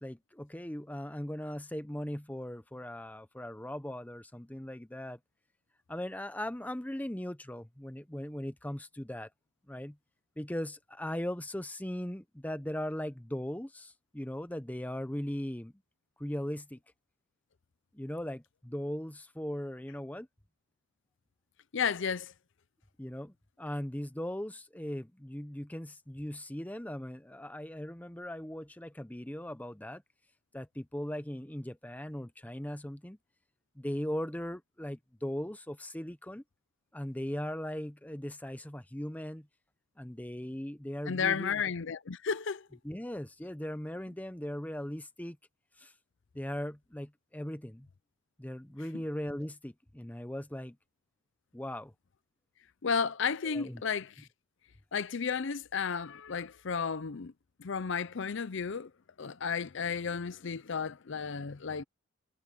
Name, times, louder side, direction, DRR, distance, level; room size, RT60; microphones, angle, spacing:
voice 1, 0.0-5.2 5.9-9.3 9.7-10.0 10.4-15.7 16.2-16.8 17.9-20.3 23.0-30.0 30.5-33.2 33.8-36.4 36.9-39.5 40.0-41.6 42.8-45.4 45.8-45.9 46.3-47.9 48.4-50.8 51.5-51.9 53.4-53.8, equal, 5° left, 0.7 m, -39 dB
voice 2, 21.7-22.3 41.1-42.7 52.8-54.3 54.9-57.3 57.6-58.9 59.2-61.8, left 6 dB, 55° left, 0.5 m, -33 dB
head